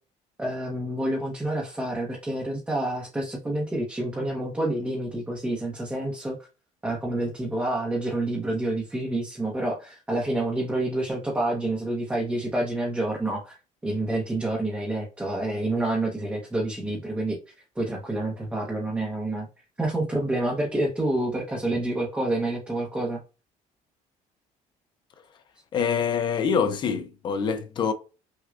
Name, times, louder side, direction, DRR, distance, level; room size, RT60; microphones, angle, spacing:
voice 1, 0.4-6.4 6.8-13.6 13.8-19.5 19.8-23.2, right 1 dB, 10° right, 0.8 m, -28 dB
voice 2, 25.7-27.9, left 6 dB, 35° left, 0.5 m, -25 dB
6.0 x 2.3 x 2.4 m
cardioid pair, 170°, 14 cm